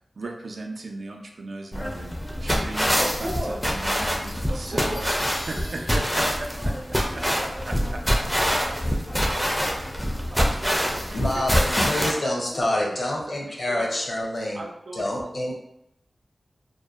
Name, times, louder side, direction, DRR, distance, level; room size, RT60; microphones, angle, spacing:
voice 1, 0.2-5.0 5.5-6.3 6.6-6.7 7.4-7.7 9.8-9.9 10.4-12.2 12.7-12.9 13.3-13.9 14.5-15.4, right 2 dB, 75° right, 1 dB, 0.3 m, -37 dB
sound 1, 1.7-12.1, equal, ahead, 0.4 m, -25 dB
voice 2, 3.0-3.6 4.5-5.0 5.6-10.4 12.5-13.1, equal, 50° right, -3 dB, 0.7 m, -37 dB
Bell, 5.3-6.9, left 1 dB, 90° left, 1.1 m, -48 dB
voice 3, 11.1-14.6 14.9-15.6, left 1 dB, 50° left, -2 dB, 0.6 m, -27 dB
2.5 x 2.1 x 2.3 m, 0.80 s
wide cardioid pair, 95°, 0 cm